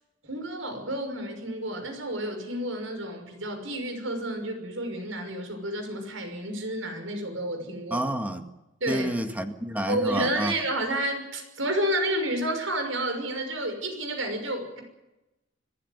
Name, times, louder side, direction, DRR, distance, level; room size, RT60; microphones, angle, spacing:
voice 1, 0.2-8.1 8.8-9.1 9.9-14.8, right 1 dB, 85° right, 6.0 m, -30 dB
voice 2, 7.9-8.4 8.9-10.5, right 1 dB, 10° right, 1.8 m, -29 dB
25.5 x 15.0 x 9.6 m
head